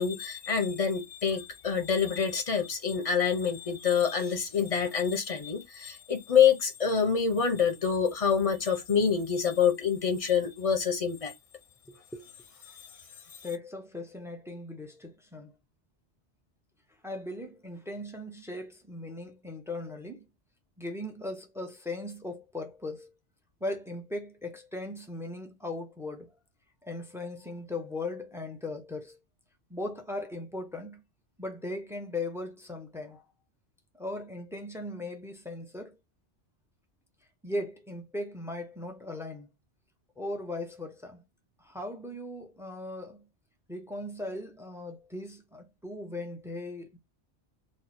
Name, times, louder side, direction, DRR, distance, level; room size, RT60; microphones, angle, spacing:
voice 1, 0.0-11.3 12.8-12.9, left 7 dB, 40° left, 0.6 m, -26 dB
voice 2, 11.9-12.3 13.4-15.5 17.0-20.2 20.8-23.1 23.6-26.3 26.8-29.2 29.7-31.0 31.4-33.2 33.9-36.0 37.4-39.5 40.2-41.2 41.6-43.3 43.7-47.0, left 2 dB, 5° right, 0.4 m, -38 dB
3.0 x 2.0 x 4.0 m
omnidirectional pair, 1.2 m